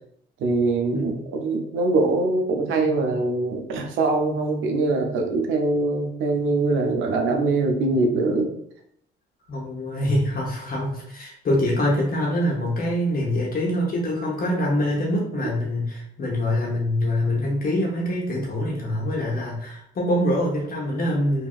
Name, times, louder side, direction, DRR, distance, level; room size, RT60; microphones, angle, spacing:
voice 1, 0.4-8.5, right 3 dB, 80° right, 3 dB, 0.6 m, -23 dB
voice 2, 9.5-21.5, left 1 dB, 45° left, -3 dB, 0.8 m, -24 dB
2.8 x 2.6 x 2.4 m, 0.71 s
cardioid pair, 90°, 20 cm